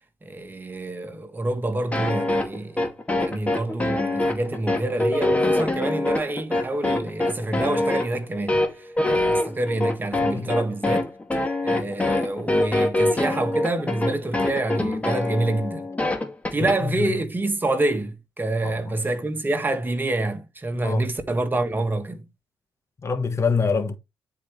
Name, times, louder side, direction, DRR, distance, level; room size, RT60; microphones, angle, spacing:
voice 1, 0.2-2.9 3.2-15.9 16.5-22.3, right 2 dB, 25° right, 1.8 m, -27 dB
sound 1, 1.9-16.8, left 2 dB, 20° left, 2.4 m, -24 dB
voice 2, 23.0-24.0, left 5 dB, 35° left, 1.3 m, -25 dB
10.0 x 4.9 x 3.3 m
cardioid pair, 70°, 8 cm